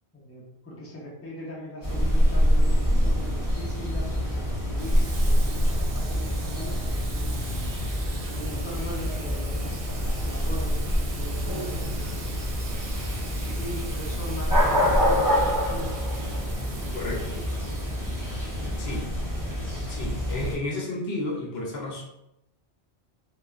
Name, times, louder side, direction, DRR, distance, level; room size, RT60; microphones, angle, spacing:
voice 1, 0.1-7.3 8.2-12.5 13.3-15.9 16.8-18.0 18.5-19.1, left 1 dB, 20° left, -4 dB, 0.5 m, -40 dB
sound 1, 1.8-20.6, equal, 20° right, 0.7 m, -26 dB
Water tap faucet / Sink (filling or washing), 4.8-19.5, right 4 dB, 90° right, 0.9 m, -43 dB
voice 2, 16.9-17.4 18.8-19.0 19.9-22.0, left 2 dB, 70° left, -1 dB, 0.8 m, -32 dB
3.0 x 2.2 x 2.4 m, 0.85 s
omnidirectional pair, 1.1 m